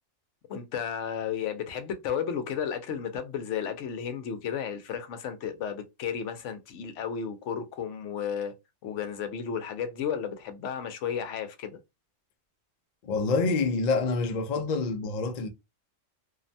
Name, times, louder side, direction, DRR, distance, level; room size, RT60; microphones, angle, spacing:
voice 1, 0.5-8.5 8.8-11.8, left 7 dB, 70° left, 0.9 m, -33 dB
voice 2, 13.0-15.5, left 4 dB, 85° left, 0.3 m, -27 dB
2.6 x 2.1 x 2.6 m
omnidirectional pair, 1.3 m